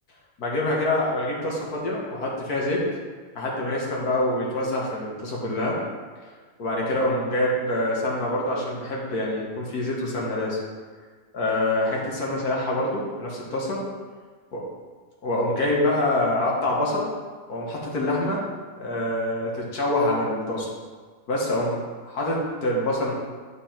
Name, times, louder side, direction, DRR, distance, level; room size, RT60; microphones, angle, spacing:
voice 1, 0.4-2.8 3.4-5.8 6.6-10.6 11.3-13.8 14.5-14.6 15.2-17.1 17.5-18.4 18.8-20.7 21.3-23.1, left 1 dB, 70° left, -4 dB, 2.0 m, -25 dB
9.7 x 5.3 x 4.4 m, 1.5 s
omnidirectional pair, 1.7 m